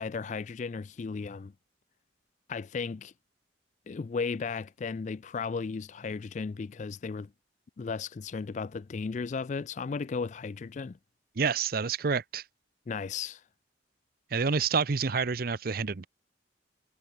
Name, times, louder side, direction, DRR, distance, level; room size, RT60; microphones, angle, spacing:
voice 1, 0.0-1.5 2.5-3.1 3.9-7.3 7.8-11.0 12.9-13.4, left 5 dB, 40° left, 0.4 m, -35 dB
voice 2, 11.4-12.4 14.3-16.1, right 5 dB, 55° right, 0.7 m, -28 dB
head